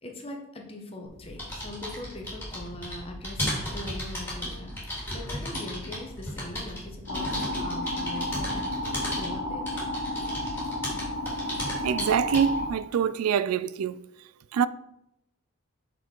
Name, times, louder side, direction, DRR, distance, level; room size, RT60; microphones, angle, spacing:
voice 1, 0.0-9.9, left 1 dB, 25° left, 1.1 m, -41 dB
sound 1, 1.1-12.7, left 1 dB, 10° left, 2.5 m, -35 dB
sound 2, 7.1-12.7, left 1 dB, 60° left, 1.3 m, -32 dB
voice 2, 11.8-14.0 14.5-14.7, right 8 dB, 80° right, 0.3 m, -25 dB
6.0 x 5.8 x 4.5 m
head